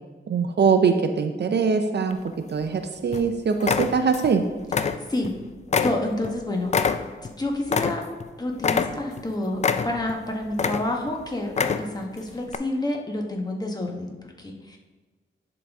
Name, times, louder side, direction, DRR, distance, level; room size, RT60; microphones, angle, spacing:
voice 1, 0.3-2.2 2.5-4.4, right 5 dB, 60° right, 7 dB, 0.5 m, -22 dB
sound 1, 2.1-2.7 3.1-3.3 3.6-4.3 4.6-5.4 5.7-8.3 8.6-9.2 9.6-10.2 10.5-11.1 11.5-12.1 12.5-12.6, left 5 dB, 35° left, 0.4 m, -25 dB
voice 2, 4.7-5.3 5.8-6.7 7.2-8.0 8.4-14.8, left 1 dB, 20° left, 1 dB, 1.1 m, -29 dB
10.5 x 4.0 x 3.5 m, 1.3 s
wide cardioid pair, 80°, 20 cm